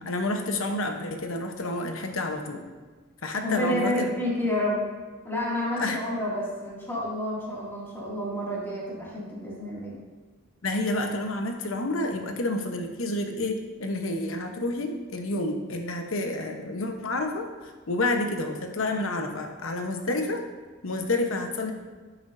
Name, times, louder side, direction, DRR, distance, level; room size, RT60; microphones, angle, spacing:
voice 1, 0.0-2.6 3.2-4.1 5.8-6.0 10.6-17.5 17.9-20.4 20.8-21.7, left 2 dB, 85° left, 4 dB, 1.0 m, -29 dB
voice 2, 3.4-4.9 5.2-10.0, left 1 dB, 10° left, -6 dB, 2.3 m, -29 dB
10.0 x 7.7 x 2.6 m, 1.4 s
head